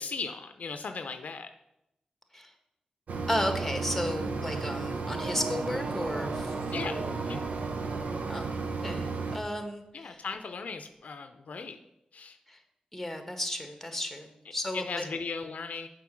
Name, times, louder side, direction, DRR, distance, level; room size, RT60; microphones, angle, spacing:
voice 1, 0.0-1.5 6.7-7.4 9.9-11.8 12.1-12.4 14.7-15.9, left 4 dB, 75° left, 8 dB, 0.6 m, -37 dB
Mechanisms, 3.1-9.4, right 4 dB, 80° right, 0.8 m, -33 dB
voice 2, 3.3-6.5 6.8-7.2 8.3-8.5 8.8-10.2 12.5-12.6 12.9-15.0, left 1 dB, 5° left, 6 dB, 1.5 m, -34 dB
sound 1, 4.9-8.9, right 3 dB, 45° right, 0.4 m, -41 dB
6.9 x 5.1 x 6.2 m, 0.84 s
cardioid pair, 40°, 3 cm